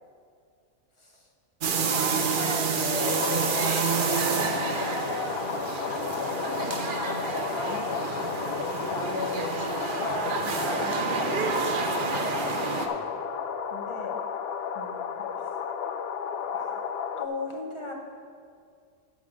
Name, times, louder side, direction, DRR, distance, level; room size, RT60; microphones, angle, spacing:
sound 1, 1.6-12.9, right 5 dB, 50° right, 0.8 m, -29 dB
voice 1, 1.7-8.5 8.8-13.0 13.7-14.2 14.7-15.2 16.5-16.8 17.2-17.9, left 1 dB, 25° left, 0 dB, 1.0 m, -37 dB
sound 2, 3.0-17.3, left 7 dB, 65° left, 0.6 m, -33 dB
9.3 x 6.2 x 6.4 m, 2.2 s
omnidirectional pair, 1.4 m